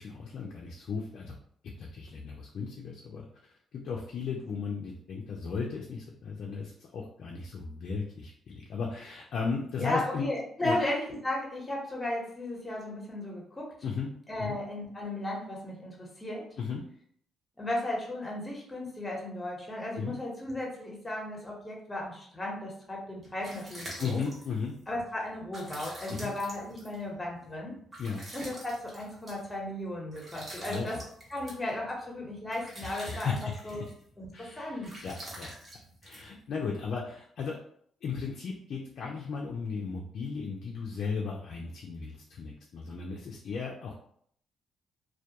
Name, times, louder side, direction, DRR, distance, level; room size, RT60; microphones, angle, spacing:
voice 1, 0.0-1.4 1.8-10.2 10.6-10.8 13.8-14.1 14.4-14.5 16.6-16.8 20.0-20.2 24.0-24.7 26.1-26.3 28.0-28.2 30.7-30.9 32.8-33.8 34.3-35.5 36.0-37.6 38.0-43.9, left 5 dB, 65° left, -1 dB, 0.4 m, -36 dB
voice 2, 9.8-13.7 14.3-16.5 17.6-24.2 24.9-27.7 28.3-31.0 31.3-33.8 34.2-35.1, left 1 dB, 15° left, -2 dB, 0.9 m, -35 dB
sound 1, 23.0-36.9, right 1 dB, 35° right, 0.9 m, -48 dB
2.2 x 2.2 x 2.8 m, 0.64 s
cardioid pair, 90°, 0 cm